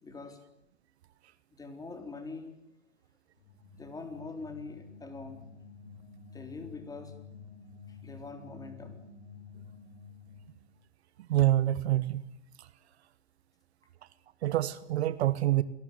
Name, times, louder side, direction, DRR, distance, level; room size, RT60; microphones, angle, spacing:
voice 1, 0.0-0.4 1.5-2.5 3.8-5.4 6.3-7.1 7.9-9.1, left 3 dB, 10° left, 3.8 m, -43 dB
sound 1, 3.4-10.7, left 5 dB, 75° left, 4.2 m, -50 dB
voice 2, 11.2-12.3 12.6-12.7 14.4-15.6, right 14 dB, 55° right, 1.3 m, -27 dB
27.5 x 19.0 x 9.7 m
hypercardioid pair, 135°, 38 cm